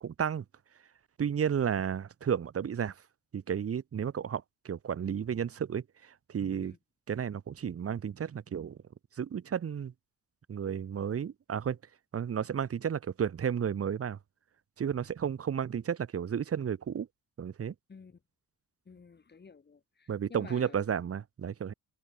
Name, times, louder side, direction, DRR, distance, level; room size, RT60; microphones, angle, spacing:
voice 1, 0.0-0.4 1.2-2.9 3.3-6.7 7.1-8.8 9.2-9.9 10.5-11.8 12.1-14.2 14.8-17.1 17.4-17.7 20.1-21.7, right 8 dB, 35° right, 0.7 m, -32 dB
voice 2, 18.9-20.8, left 5 dB, 25° left, 0.9 m, -51 dB
cardioid pair, 85°, 38 cm